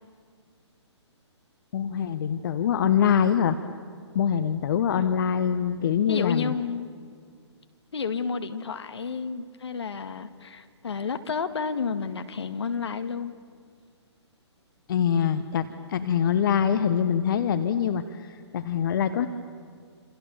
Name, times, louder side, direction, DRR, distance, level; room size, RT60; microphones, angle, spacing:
voice 1, 1.7-3.6 4.1-6.5 14.9-19.3, left 8 dB, 45° left, 10 dB, 1.1 m, -24 dB
voice 2, 6.1-6.9 7.9-13.3, left 5 dB, 65° left, 9 dB, 1.8 m, -31 dB
28.0 x 27.5 x 7.2 m, 2.1 s
figure-of-eight pair, 130°, 15 cm